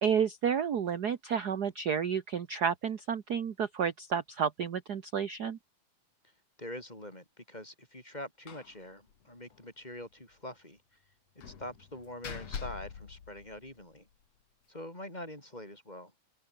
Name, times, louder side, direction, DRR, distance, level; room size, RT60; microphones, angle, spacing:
voice 1, 0.0-5.6, right 7 dB, 50° right, 1.3 m, -31 dB
voice 2, 6.6-10.8 11.4-14.1 14.7-16.1, left 1 dB, 15° left, 5.6 m, -44 dB
Slam, 8.5-8.8 9.1-9.2 9.5-9.6 11.4-14.0, left 7 dB, 60° left, 3.6 m, -44 dB
open air
omnidirectional pair, 3.4 m